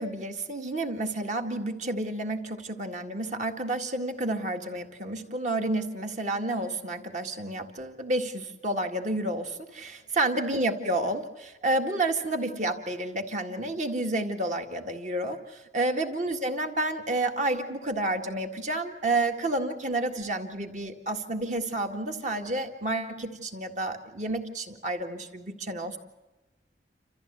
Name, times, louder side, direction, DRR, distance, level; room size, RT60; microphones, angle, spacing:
voice 1, 0.0-26.0, right 2 dB, 40° right, 4 dB, 2.0 m, -30 dB
29.0 x 14.5 x 8.2 m, 1.1 s
head